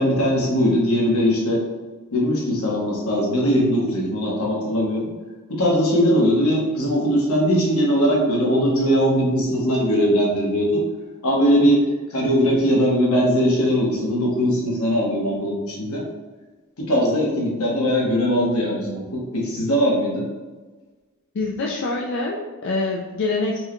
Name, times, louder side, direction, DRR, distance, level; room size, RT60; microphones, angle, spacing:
voice 1, 0.0-1.6 2.1-5.0 5.5-10.8 11.2-16.1 16.8-20.3, equal, 75° left, -3 dB, 1.0 m, -20 dB
voice 2, 21.3-23.6, left 3 dB, 55° left, -2 dB, 0.4 m, -25 dB
4.4 x 2.2 x 3.0 m, 1.3 s
head